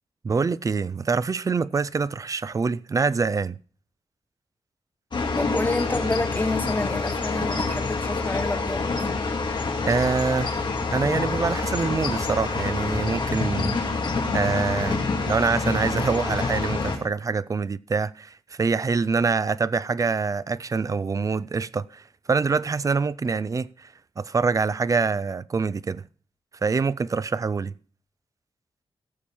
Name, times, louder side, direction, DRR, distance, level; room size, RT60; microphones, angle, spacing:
voice 1, 0.2-3.6 9.9-26.0 26.6-27.7, right 4 dB, 35° right, 0.4 m, -25 dB
sound 1, 5.1-17.0, left 3 dB, 50° left, 2.0 m, -27 dB
voice 2, 5.3-9.1, left 2 dB, 15° left, 1.1 m, -28 dB
16.0 x 7.2 x 4.4 m
wide cardioid pair, 140°, 10 cm